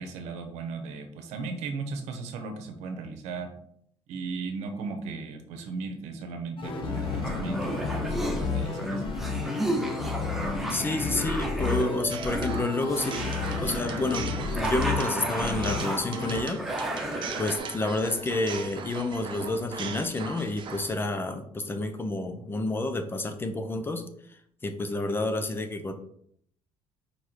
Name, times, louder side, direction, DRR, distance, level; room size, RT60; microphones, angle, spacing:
voice 1, 0.0-3.5 4.1-9.0, right 4 dB, 80° right, 5 dB, 1.2 m, -36 dB
sound 1, 6.6-16.4, left 4 dB, 50° left, 1.3 m, -32 dB
sound 2, 6.9-17.6, right 1 dB, ahead, 0.9 m, -34 dB
voice 2, 10.7-13.2 13.6-16.6 17.4-24.0 24.6-25.9, left 2 dB, 20° left, 7 dB, 0.7 m, -29 dB
sound 3, 12.1-21.1, right 6 dB, 45° right, 0.8 m, -39 dB
4.8 x 4.8 x 4.5 m, 0.68 s
cardioid pair, 125°, 12 cm